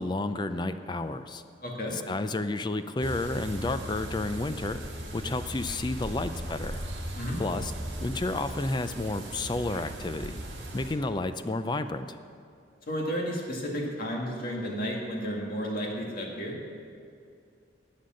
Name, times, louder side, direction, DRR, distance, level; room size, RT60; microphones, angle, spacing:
voice 1, 0.0-1.4 1.9-4.8 5.1-6.8 7.4-7.7 8.0-10.4 10.7-12.2, left 2 dB, 25° left, 10 dB, 0.4 m, -31 dB
voice 2, 1.6-2.0 7.1-7.4 12.9-16.5, equal, 50° left, -1 dB, 2.0 m, -32 dB
sound 1, 3.0-10.9, right 1 dB, 65° right, 2.1 m, -38 dB
11.5 x 8.6 x 6.4 m, 2.5 s
head